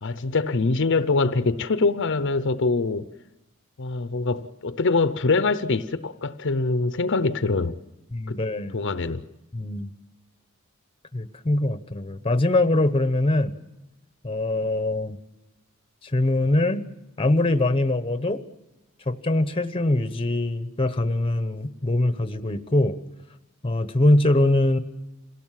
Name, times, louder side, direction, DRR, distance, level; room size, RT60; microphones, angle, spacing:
voice 1, 0.0-3.1 3.8-7.8 8.3-8.4 8.7-9.2, left 3 dB, 60° left, 0.7 m, -24 dB
voice 2, 8.1-8.8 9.5-9.9 11.1-13.6 14.2-15.2 16.0-16.8 17.2-18.4 19.1-23.0 23.6-24.8, left 1 dB, 25° left, 0.9 m, -23 dB
27.0 x 17.0 x 7.5 m
head